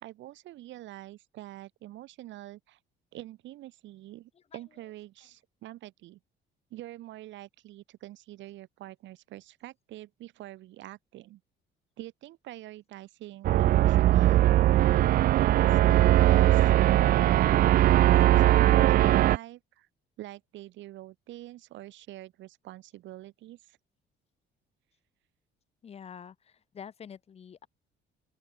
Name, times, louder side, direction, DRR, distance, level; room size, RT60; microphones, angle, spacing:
voice 1, 0.0-2.8 3.1-6.2 6.7-11.4 12.0-14.4 14.9-16.7 17.1-19.9 20.2-23.8, right 15 dB, 65° right, 2.4 m, -45 dB
sound 1, 13.4-19.4, right 14 dB, 45° right, 0.5 m, -20 dB
voice 2, 25.8-27.7, left 7 dB, 30° left, 2.4 m, -47 dB
open air
cardioid pair, 180°, 20 cm